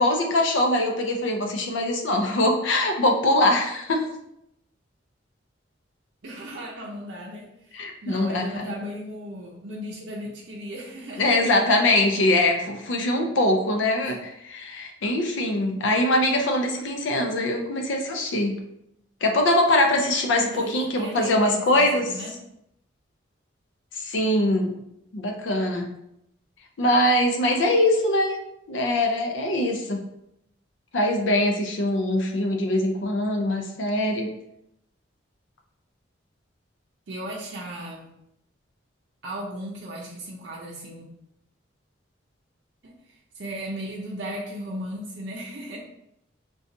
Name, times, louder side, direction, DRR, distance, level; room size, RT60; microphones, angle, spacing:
voice 1, 0.0-4.0 7.7-8.7 11.2-18.5 19.2-22.1 23.9-24.8 25.1-25.9 26.8-28.4 28.7-30.0 30.9-34.3, left 1 dB, 75° left, 2 dB, 0.5 m, -22 dB
voice 2, 6.2-7.7 8.0-11.6 14.0-14.1 20.5-22.4 37.1-38.1 39.2-41.1 42.8-43.0 43.3-45.8, equal, 60° right, -4 dB, 0.5 m, -36 dB
3.8 x 2.3 x 2.6 m, 0.79 s
head